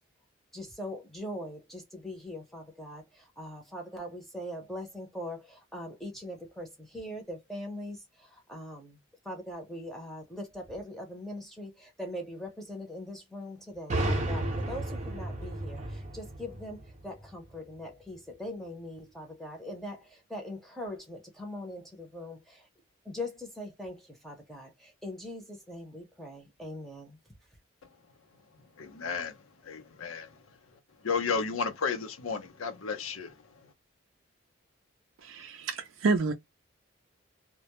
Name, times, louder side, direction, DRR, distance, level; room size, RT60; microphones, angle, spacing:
voice 1, 0.5-8.0 8.3-9.0 9.3-22.6 23.1-27.2, left 1 dB, ahead, 0.6 m, -41 dB
sound 1, 13.9-17.6, right 1 dB, 35° right, 0.6 m, -33 dB
voice 2, 28.8-29.3 29.7-30.3 31.0-33.3, left 5 dB, 85° left, 0.6 m, -32 dB
voice 3, 35.2-36.3, right 3 dB, 75° right, 0.4 m, -29 dB
2.2 x 2.0 x 2.8 m
head